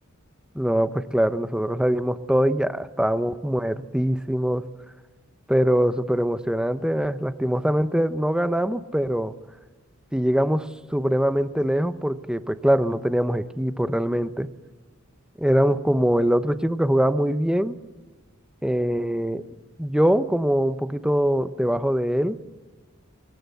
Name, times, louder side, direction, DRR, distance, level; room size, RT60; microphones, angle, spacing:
voice 1, 0.5-4.7 5.5-9.3 10.1-14.5 15.4-17.8 18.6-19.4 19.8-22.4, equal, 5° right, 12 dB, 0.7 m, -23 dB
22.5 x 18.5 x 8.0 m, 1.3 s
head